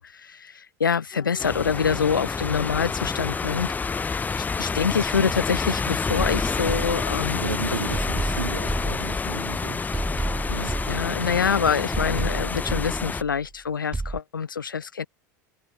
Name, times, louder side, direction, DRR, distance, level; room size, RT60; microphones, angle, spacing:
voice 1, 0.0-7.4 10.6-15.1, left 6 dB, 90° left, 0.4 m, -26 dB
sound 1, 1.1-9.1, left 9 dB, 30° left, 2.8 m, -47 dB
sound 2, 1.4-13.2, left 4 dB, 15° left, 0.7 m, -28 dB
sound 3, 6.2-7.5 7.9-9.5 9.9-11.5 11.9-13.5 13.9-14.2, right 3 dB, 10° right, 1.5 m, -31 dB
voice 2, 7.4-9.9 10.5-10.8, right 4 dB, 90° right, 5.5 m, -33 dB
figure-of-eight pair, 80°, 11 cm